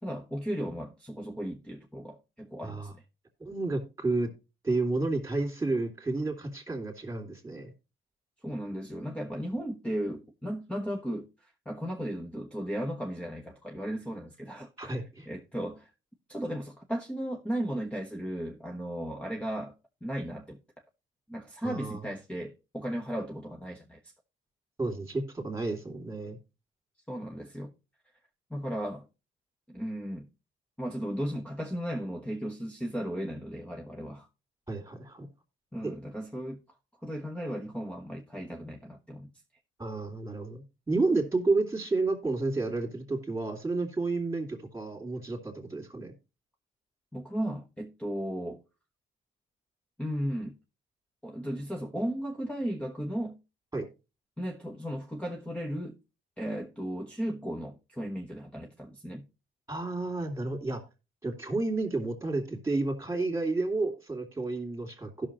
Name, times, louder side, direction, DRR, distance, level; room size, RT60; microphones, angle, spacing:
voice 1, 0.0-3.0 8.4-15.9 16.3-19.7 20.0-20.6 21.3-24.0 27.1-27.7 28.5-29.1 29.7-30.3 30.8-34.3 35.7-36.6 37.0-39.3 47.1-48.6 50.0-50.5 51.2-53.4 54.4-56.0 56.4-59.2, equal, 5° left, 1.2 m, -35 dB
voice 2, 2.6-2.9 3.4-4.3 4.6-7.7 14.8-15.3 21.6-22.0 24.8-26.4 34.7-35.3 35.8-35.9 39.8-46.1 53.7-53.9 59.7-60.8 61.2-65.3, right 3 dB, 15° right, 2.8 m, -31 dB
16.0 x 6.3 x 3.0 m
cardioid pair, 90°, 20 cm